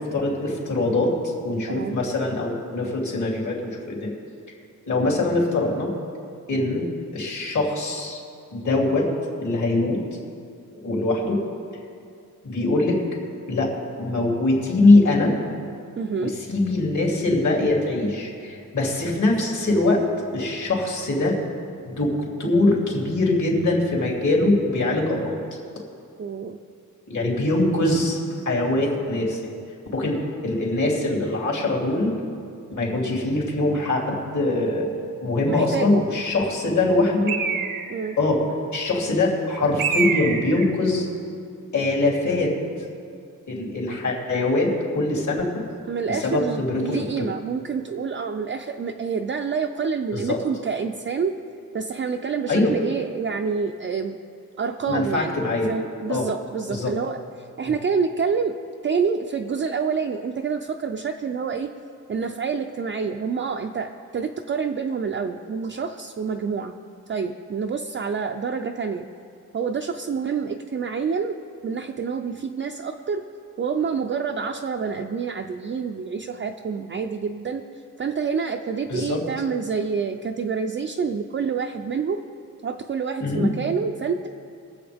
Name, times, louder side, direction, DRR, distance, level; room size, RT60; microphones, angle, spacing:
voice 1, 0.0-4.1 4.9-5.9 6.5-6.8 7.1-8.2 8.5-9.1 9.4-10.0 10.8-11.4 12.4-13.0 13.5-15.3 16.2-20.0 20.3-21.4 21.8-22.1 22.4-25.4 27.1-28.2 28.4-29.6 29.9-30.2 30.4-32.2 32.7-34.9 35.2-37.3 38.2-41.1 41.7-42.5 43.5-45.6 46.1-47.0 50.1-50.4 52.5-52.7 54.8-55.7 56.1-56.2 56.7-56.9 78.9-79.2 83.2-83.5, left 2 dB, 60° left, -2 dB, 2.9 m, -22 dB
voice 2, 1.7-2.0 16.0-16.3 26.2-26.6 35.5-36.0 37.9-38.2 45.9-51.4 51.7-54.2 54.6-55.4 55.7-58.5 58.8-61.7 62.1-66.7 67.1-69.1 69.5-71.4 71.6-73.2 73.6-77.6 78.0-82.2 82.6-84.3, right 5 dB, 35° right, 3 dB, 0.4 m, -27 dB
Bird, 37.3-38.1 39.8-40.7, right 6 dB, 85° right, 1.1 m, -26 dB
23.0 x 7.8 x 3.5 m, 2.4 s
wide cardioid pair, 150°, 33 cm